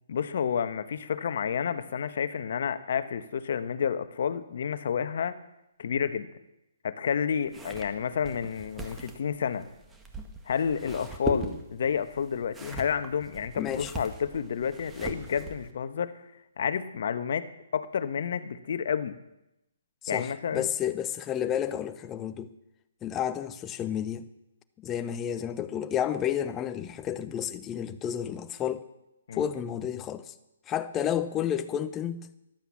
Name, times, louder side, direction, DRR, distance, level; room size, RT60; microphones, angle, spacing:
voice 1, 0.1-5.4 5.8-6.3 6.8-9.7 10.5-16.2 16.6-19.2 20.1-20.7 29.3-29.5, left 7 dB, 55° left, 1.2 m, -30 dB
sound 1, 7.5-15.7, right 2 dB, 10° right, 1.8 m, -40 dB
voice 2, 13.5-13.9 20.0-22.5 23.0-24.3 24.8-28.9 29.3-30.3 30.7-32.3, left 9 dB, 20° left, 0.9 m, -31 dB
14.0 x 12.0 x 7.3 m
figure-of-eight pair, 135°, 0 cm